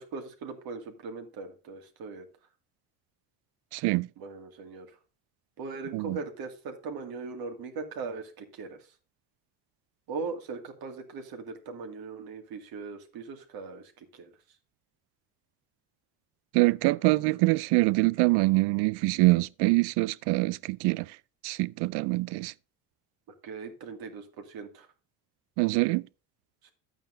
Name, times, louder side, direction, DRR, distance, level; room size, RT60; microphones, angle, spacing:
voice 1, 0.0-2.3 4.2-4.9 5.6-8.8 10.1-14.3 23.4-24.9 26.6-26.7, right 4 dB, 65° right, 2.3 m, -39 dB
voice 2, 3.7-4.1 5.9-6.2 16.5-21.1 21.4-22.5 25.6-26.0, right 23 dB, 85° right, 0.5 m, -24 dB
11.5 x 8.9 x 2.6 m
cardioid pair, 125°, 39 cm